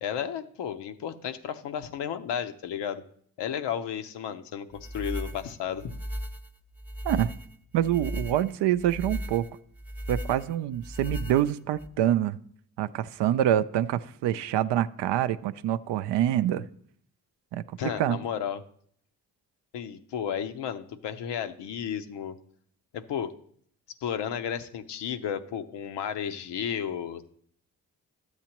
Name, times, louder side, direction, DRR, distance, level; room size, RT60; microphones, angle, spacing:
voice 1, 0.0-3.0 3.4-6.0 17.8-18.6 19.7-22.4 22.9-23.3 24.0-27.4, left 8 dB, 75° left, 8 dB, 0.7 m, -33 dB
sound 1, 4.8-11.9, equal, 5° right, 0.6 m, -37 dB
voice 2, 7.7-9.5 10.1-12.4 12.8-16.7 17.5-17.6 18.0-18.2, right 11 dB, 75° right, 13 dB, 0.5 m, -26 dB
12.5 x 8.1 x 2.9 m, 0.63 s
supercardioid pair, 50°, 42 cm